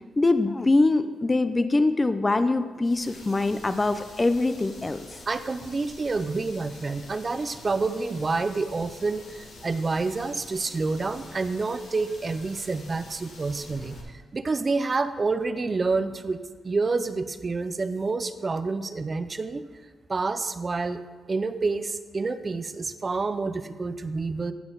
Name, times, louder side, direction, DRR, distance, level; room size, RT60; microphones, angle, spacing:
voice 1, 0.2-5.0, left 2 dB, 25° left, 11 dB, 0.5 m, -23 dB
sound 1, 2.8-14.0, left 2 dB, 85° left, 2.0 m, -47 dB
voice 2, 5.3-19.7 20.1-21.0 21.3-24.5, right 3 dB, 35° right, 12 dB, 0.5 m, -28 dB
15.0 x 6.1 x 3.9 m, 1.4 s
cardioid pair, 75°, 0 cm